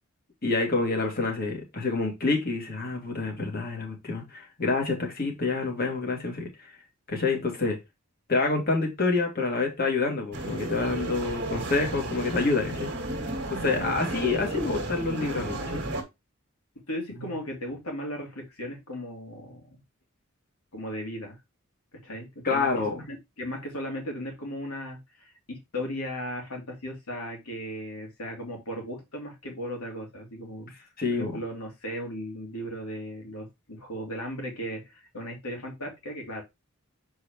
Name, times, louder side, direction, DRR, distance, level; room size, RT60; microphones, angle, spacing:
voice 1, 0.4-6.7 7.1-7.8 8.3-12.9 13.5-15.9 17.2-17.3 22.4-23.1 31.0-31.4, left 3 dB, 45° left, 2.3 m, -27 dB
sound 1, 10.3-16.0, right 1 dB, 50° right, 1.7 m, -33 dB
voice 2, 13.6-14.0 16.9-19.7 20.7-21.4 22.0-22.7 23.1-36.4, equal, 85° left, 2.8 m, -36 dB
7.0 x 4.7 x 3.0 m
head